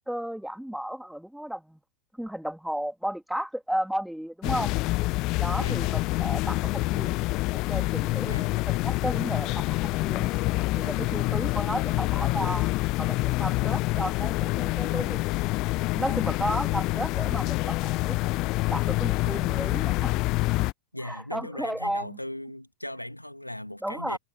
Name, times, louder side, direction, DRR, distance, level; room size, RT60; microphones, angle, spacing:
voice 1, 0.1-1.8 2.2-4.7 5.4-7.2 7.7-10.3 10.7-12.7 13.0-15.2 15.9-18.2 18.7-20.1 21.0-22.2 23.8-24.2, equal, ahead, 2.4 m, -33 dB
sound 1, 4.4-20.7, left 21 dB, 40° left, 0.7 m, -27 dB
voice 2, 20.9-24.2, left 1 dB, 85° left, 3.0 m, -38 dB
figure-of-eight pair, 90°, 0 cm